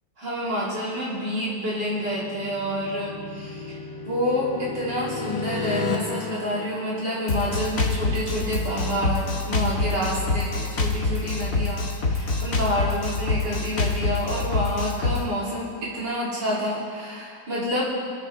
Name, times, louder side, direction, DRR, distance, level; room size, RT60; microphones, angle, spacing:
voice 1, 0.2-3.8 4.0-17.9, equal, 60° right, -7 dB, 4.2 m, -28 dB
sound 1, 1.9-7.7, left 4 dB, 75° left, 1.9 m, -34 dB
Drum kit, 7.3-15.2, left 3 dB, 50° left, 2.1 m, -25 dB
26.5 x 9.4 x 3.6 m, 2.1 s
omnidirectional pair, 2.1 m